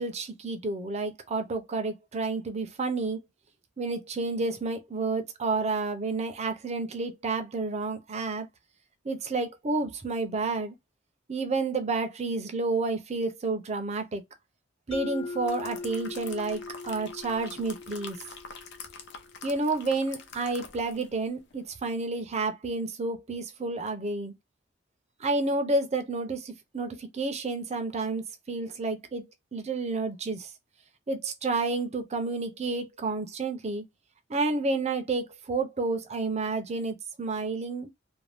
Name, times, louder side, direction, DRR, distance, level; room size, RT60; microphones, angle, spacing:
voice 1, 0.0-3.2 3.8-8.5 9.0-10.7 11.3-14.2 14.9-18.2 19.4-24.3 25.2-29.2 29.5-30.5 31.1-33.8 34.3-37.9, right 3 dB, 35° right, 0.6 m, -30 dB
Mallet percussion, 14.9-19.5, left 3 dB, 85° left, 1.1 m, -41 dB
sound 1, 15.1-21.2 21.5-21.7, left 5 dB, 60° left, 0.6 m, -46 dB
2.6 x 2.2 x 3.3 m
head